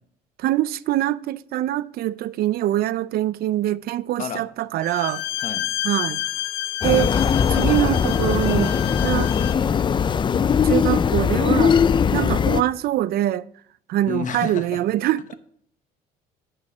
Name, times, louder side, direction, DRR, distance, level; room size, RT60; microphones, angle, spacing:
voice 1, 0.4-5.2 5.8-6.2 6.8-7.1 7.5-8.7 9.0-9.3 10.6-11.8 12.1-13.4 13.9-15.2, right 13 dB, 65° right, 0.4 m, -23 dB
Bowed string instrument, 4.8-9.7, left 13 dB, 85° left, 0.6 m, -30 dB
voice 2, 5.4-5.7 14.1-14.8 15.3-15.4, left 7 dB, 50° left, 1.1 m, -31 dB
sound 1, 6.8-12.6, left 7 dB, 30° left, 0.4 m, -20 dB
9.6 x 5.5 x 6.2 m
cardioid pair, 110°, 17 cm